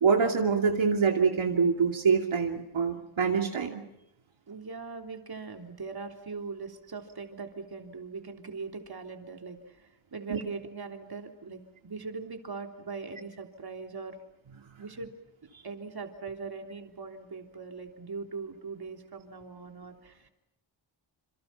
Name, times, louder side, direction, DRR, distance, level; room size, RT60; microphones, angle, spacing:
voice 1, 0.0-3.8 10.3-10.4, right 5 dB, 70° right, 3 dB, 2.6 m, -25 dB
voice 2, 4.5-14.2 14.8-15.1 15.6-20.3, right 4 dB, 50° right, 4 dB, 3.5 m, -41 dB
28.5 x 28.0 x 5.9 m, 0.84 s
wide cardioid pair, 165°, 49 cm